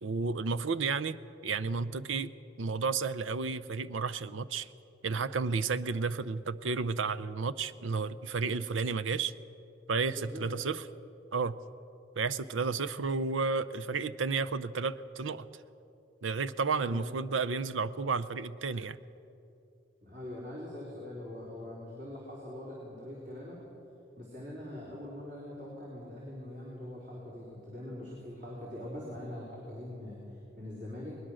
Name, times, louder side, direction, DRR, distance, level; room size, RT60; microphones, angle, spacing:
voice 1, 0.0-2.3 2.6-4.7 5.0-9.3 9.9-10.8 11.3-11.6 12.2-15.5 16.2-19.0, right 4 dB, 90° right, 15 dB, 0.7 m, -32 dB
voice 2, 10.2-10.5 16.8-17.1 20.0-23.6 24.2-31.2, left 1 dB, 45° right, -6 dB, 4.1 m, -43 dB
21.0 x 20.5 x 6.4 m, 2.8 s
head